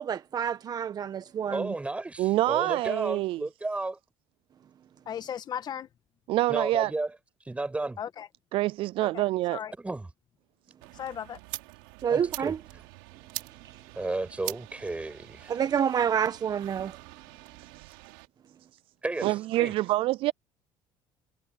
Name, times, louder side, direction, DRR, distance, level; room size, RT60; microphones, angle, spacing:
voice 1, 0.0-1.7 12.0-12.6 15.5-17.0, right 8 dB, 40° right, 1.4 m, -28 dB
voice 2, 1.5-4.0 6.5-7.1 7.4-8.0 9.8-10.1 12.1-12.5 13.9-15.5 19.0-19.7, right 2 dB, 10° right, 6.1 m, -33 dB
voice 3, 2.2-3.4 6.3-6.9 8.5-9.6 19.2-20.3, right 17 dB, 60° right, 0.4 m, -26 dB
voice 4, 5.0-5.9 8.0-8.3 9.0-9.2 9.5-9.7 10.9-11.4, left 9 dB, 45° left, 1.7 m, -36 dB
sound 1, 10.8-18.3, right 26 dB, 90° right, 5.0 m, -44 dB
supercardioid pair, 105°, 10 cm